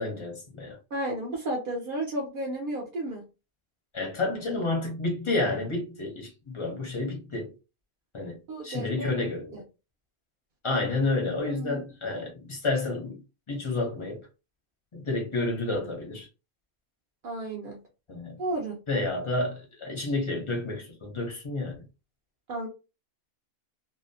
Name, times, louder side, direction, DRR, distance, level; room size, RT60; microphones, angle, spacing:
voice 1, 0.0-0.8 3.9-7.5 8.1-8.4 8.6-9.6 10.6-13.2 13.5-14.2 14.9-16.3 18.1-18.4 18.9-21.8, left 2 dB, 35° left, 0.5 m, -30 dB
voice 2, 0.9-3.2 8.5-9.2 9.5-9.6 11.6-11.8 17.2-17.8 18.4-18.8 22.5-22.7, right 1 dB, 65° right, 0.5 m, -32 dB
2.7 x 2.0 x 2.6 m
omnidirectional pair, 1.5 m